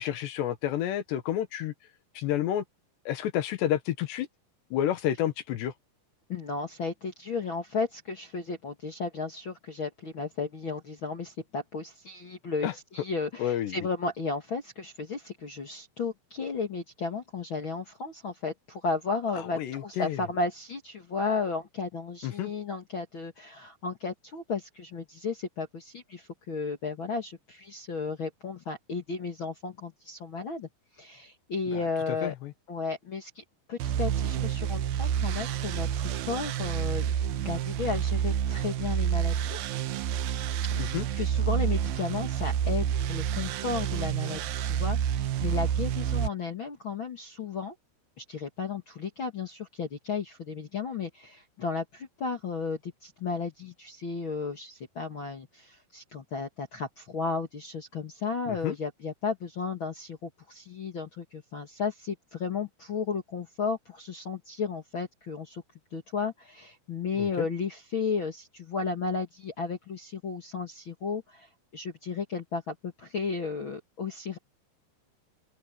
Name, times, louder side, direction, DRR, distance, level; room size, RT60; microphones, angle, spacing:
voice 1, 0.0-1.7 2.2-2.6 3.1-4.3 4.7-5.7 12.6-12.7 13.4-13.8 19.4-20.2 22.2-22.5 31.7-31.8 32.2-32.5 40.7-41.1 58.5-58.8 67.2-67.5, left 11 dB, 85° left, 3.7 m, -30 dB
voice 2, 6.3-30.7 31.0-32.4 32.7-33.4 33.7-39.6 40.7-47.7 48.2-65.6 65.9-74.4, left 4 dB, 50° left, 1.5 m, -34 dB
sound 1, 33.8-46.3, right 9 dB, 70° right, 2.6 m, -29 dB
open air
omnidirectional pair, 4.8 m